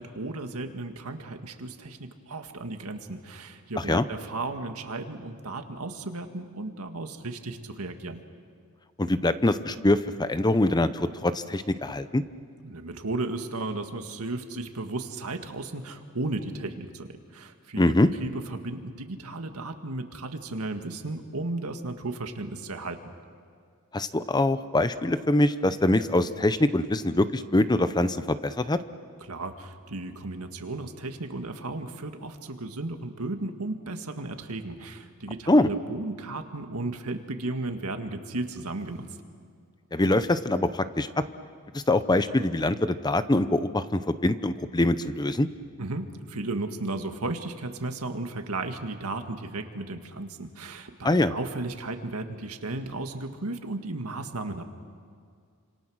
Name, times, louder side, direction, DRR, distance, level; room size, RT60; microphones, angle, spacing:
voice 1, 0.0-8.2 12.6-23.0 29.2-39.1 45.8-54.6, right 2 dB, 85° right, 6 dB, 1.8 m, -35 dB
voice 2, 9.0-12.2 17.7-18.1 23.9-28.8 35.5-35.7 39.9-41.2 41.7-45.5 51.0-51.3, left 1 dB, 20° left, 12 dB, 0.7 m, -24 dB
28.5 x 26.5 x 6.3 m, 2.2 s
head